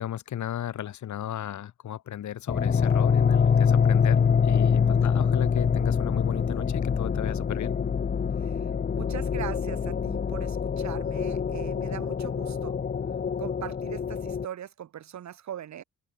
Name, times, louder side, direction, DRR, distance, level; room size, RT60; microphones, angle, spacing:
voice 1, 0.0-7.8, left 11 dB, 70° left, 6.0 m, -35 dB
sound 1, 2.5-14.5, left 6 dB, 30° left, 0.9 m, -25 dB
voice 2, 8.4-12.8 13.4-15.8, right 10 dB, 65° right, 5.0 m, -40 dB
cardioid pair, 90°, 30 cm